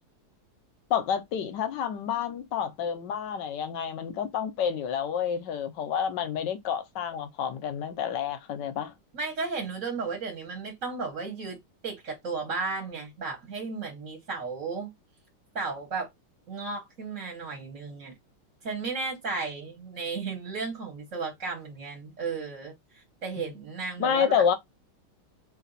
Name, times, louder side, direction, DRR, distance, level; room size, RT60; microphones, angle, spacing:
voice 1, 0.9-8.9 23.4-23.5 24.0-24.5, left 8 dB, 70° left, 1.1 m, -29 dB
voice 2, 9.1-11.6 11.8-14.9 15.5-16.1 16.5-18.1 18.6-24.4, right 4 dB, 40° right, 1.7 m, -34 dB
3.3 x 2.8 x 4.0 m
omnidirectional pair, 2.3 m